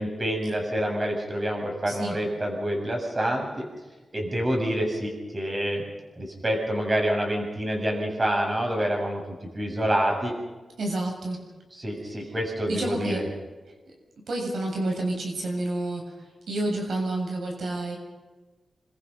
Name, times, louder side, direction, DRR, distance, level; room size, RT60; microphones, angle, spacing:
voice 1, 0.0-3.5 4.1-5.8 6.2-10.3 11.7-13.2, right 1 dB, 25° right, 1 dB, 7.5 m, -27 dB
voice 2, 1.9-2.2 10.8-11.4 12.7-13.3 14.3-16.1 16.5-18.0, right 1 dB, 75° right, 1 dB, 7.2 m, -29 dB
28.0 x 25.0 x 5.5 m, 1.2 s
wide cardioid pair, 140°, 0 cm